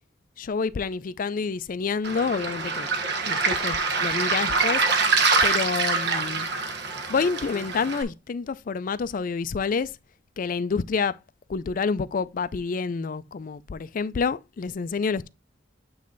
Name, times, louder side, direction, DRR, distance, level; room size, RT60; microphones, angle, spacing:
voice 1, 0.4-2.9 3.3-4.8 5.4-6.5 7.1-10.0 10.4-11.2 11.5-15.3, left 5 dB, 45° left, 0.4 m, -28 dB
Waves surf, 2.0-8.0, right 4 dB, 65° right, 1.3 m, -25 dB
8.4 x 3.2 x 3.8 m
head